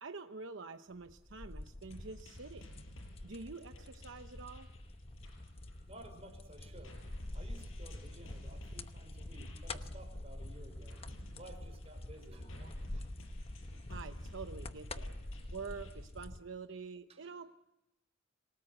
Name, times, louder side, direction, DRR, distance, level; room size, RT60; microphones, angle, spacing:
voice 1, 0.0-2.6 3.2-4.7 13.9-15.1 15.5-17.5, right 4 dB, 65° right, 7 dB, 0.9 m, -47 dB
sound 1, 1.0-16.4, left 1 dB, 30° left, 0.9 m, -46 dB
sound 2, 1.9-6.3 6.6-15.9, left 1 dB, 75° left, 7.1 m, -56 dB
voice 2, 5.9-7.0 7.3-11.0 11.4-13.1 17.1-17.3, right 1 dB, 30° right, 3 dB, 5.3 m, -55 dB
27.5 x 18.5 x 7.9 m, 0.94 s
head